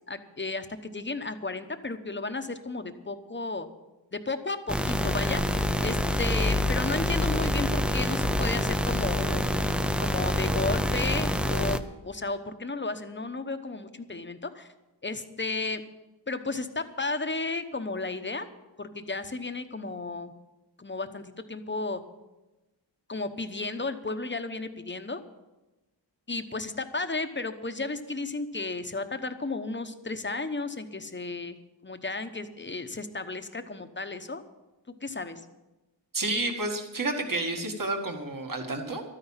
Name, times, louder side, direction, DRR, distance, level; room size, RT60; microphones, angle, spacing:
voice 1, 0.1-3.7 4.1-9.5 10.0-14.7 15.0-15.8 16.3-18.5 18.8-20.3 20.8-22.0 23.1-25.2 26.3-34.4 35.0-35.4, left 3 dB, 25° left, 8 dB, 1.0 m, -33 dB
sound 1, 4.7-11.8, left 1 dB, ahead, 0.5 m, -26 dB
voice 2, 36.1-39.0, right 2 dB, 45° right, 3 dB, 2.0 m, -30 dB
13.0 x 9.8 x 7.3 m, 1.0 s
wide cardioid pair, 95°, 45 cm